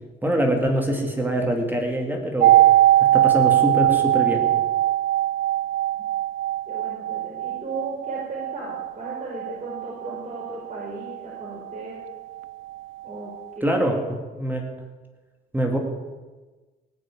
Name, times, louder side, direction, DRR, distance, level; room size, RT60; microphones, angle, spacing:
voice 1, 0.2-2.6 3.1-4.4 13.6-14.0 14.4-14.6 15.5-15.8, right 1 dB, 10° right, 1 dB, 2.4 m, -24 dB
sound 1, 2.4-12.1 12.4-12.5, right 13 dB, 85° right, 0.4 m, -21 dB
voice 2, 6.7-12.0 13.0-13.9, right 2 dB, 40° right, -5 dB, 5.0 m, -36 dB
18.0 x 6.3 x 9.1 m, 1.3 s
cardioid pair, 90°, 20 cm